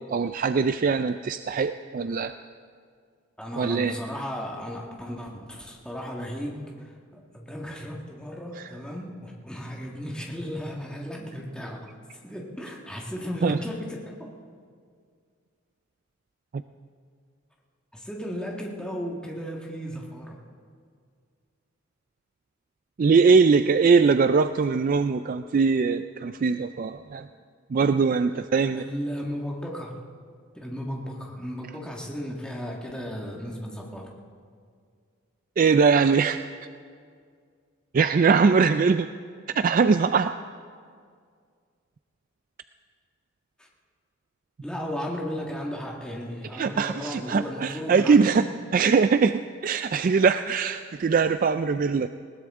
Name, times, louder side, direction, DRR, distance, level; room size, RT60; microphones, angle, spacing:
voice 1, 0.0-2.3 3.6-4.0 8.6-8.7 13.4-13.6 16.5-16.6 23.0-27.3 27.7-28.8 35.6-36.4 37.9-39.1 39.5-40.4 46.5-48.5 48.7-52.1, right 5 dB, 45° right, 10 dB, 0.3 m, -21 dB
voice 2, 3.4-11.9 12.2-14.3 17.9-20.4 28.7-30.0 30.5-34.1 43.6-43.7 44.6-48.3, equal, 5° left, -2 dB, 1.7 m, -35 dB
20.5 x 18.5 x 3.7 m, 2.1 s
head